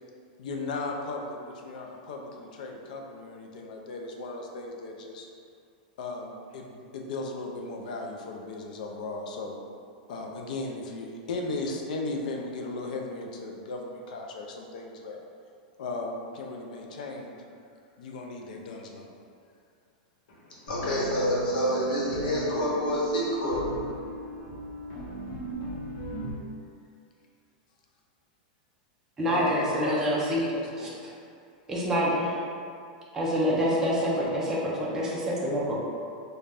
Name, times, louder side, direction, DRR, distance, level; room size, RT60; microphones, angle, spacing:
voice 1, 0.4-5.3 6.0-9.6 10.1-15.2 15.8-17.3 18.0-19.1 29.3-30.9, left 3 dB, 65° left, 1 dB, 0.4 m, -36 dB
voice 2, 20.6-23.6, equal, 85° left, -6 dB, 0.9 m, -27 dB
sound 1, 20.7-26.3, right 1 dB, 50° left, 0.9 m, -37 dB
voice 3, 29.2-30.5 30.8-30.9 31.7-32.4 33.1-35.8, equal, 10° right, -6 dB, 0.4 m, -26 dB
2.5 x 2.2 x 3.3 m, 2.4 s
supercardioid pair, 170°, 5 cm